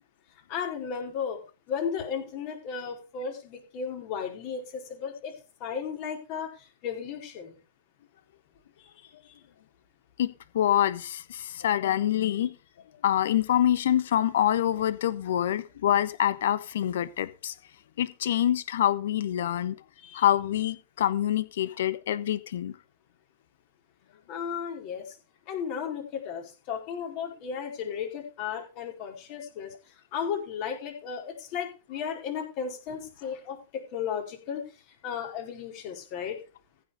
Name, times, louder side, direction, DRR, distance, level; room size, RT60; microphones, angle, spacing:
voice 1, 0.5-1.4 1.7-5.3 5.6-7.6 8.8-9.3 20.0-20.2 24.3-25.2 25.5-29.7 30.1-34.7 35.0-36.4, left 7 dB, 45° left, 2 dB, 4.7 m, -35 dB
voice 2, 10.5-12.5 13.0-17.5 18.0-19.8 20.1-22.7, left 11 dB, 65° left, 16 dB, 1.1 m, -26 dB
15.0 x 6.7 x 5.0 m, 0.32 s
figure-of-eight pair, 105°, 0 cm